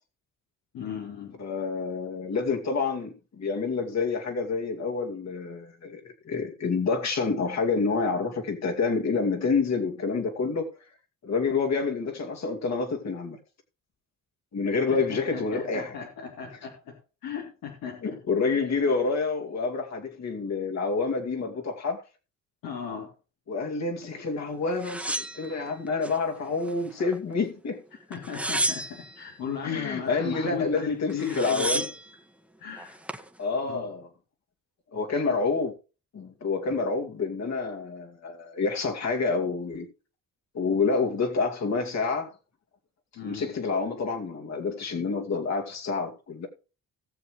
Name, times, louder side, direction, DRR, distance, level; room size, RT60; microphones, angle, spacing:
voice 1, 0.7-1.3 14.9-16.9 17.2-18.2 22.6-23.1 28.1-31.8 32.6-33.0 33.6-33.9 43.1-43.5, left 7 dB, 85° left, 3.2 m, -36 dB
voice 2, 1.4-10.7 11.2-13.4 14.5-15.9 18.0-22.0 23.5-27.8 29.6-31.9 33.4-34.1 34.9-35.7 36.1-39.9 40.5-42.3 43.2-46.5, left 4 dB, 55° left, 2.5 m, -28 dB
sound 1, 24.8-26.2 26.6-27.4 28.1-29.2 30.8-30.9 31.1-32.1 32.8-33.3, right 1 dB, 5° right, 1.5 m, -32 dB
18.5 x 7.1 x 3.2 m
cardioid pair, 90°, 33 cm